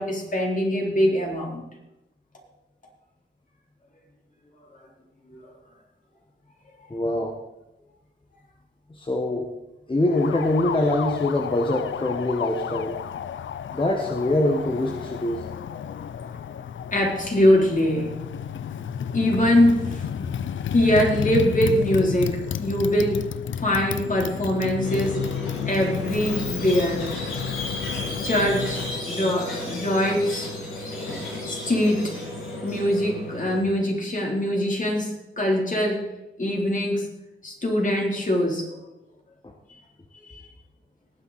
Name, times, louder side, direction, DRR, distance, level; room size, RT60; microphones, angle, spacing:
voice 1, 0.0-1.6 5.3-5.5 16.9-18.4 19.1-23.2 23.6-25.2 25.6-27.1 27.9-30.5 31.5-32.2 32.6-36.0 36.4-37.0 37.4-38.7 40.2-40.4, left 1 dB, 40° left, -1 dB, 4.0 m, -23 dB
voice 2, 6.9-7.4 8.9-9.5 9.9-13.0 13.7-15.4 39.4-39.5, left 1 dB, 25° left, 2 dB, 1.5 m, -24 dB
Motorcycle, 10.1-29.1, left 8 dB, 70° left, 0.6 m, -32 dB
Squeak, 24.8-33.6, left 1 dB, 90° left, 5.5 m, -34 dB
19.0 x 8.1 x 4.3 m, 0.95 s
cardioid pair, 70°, 21 cm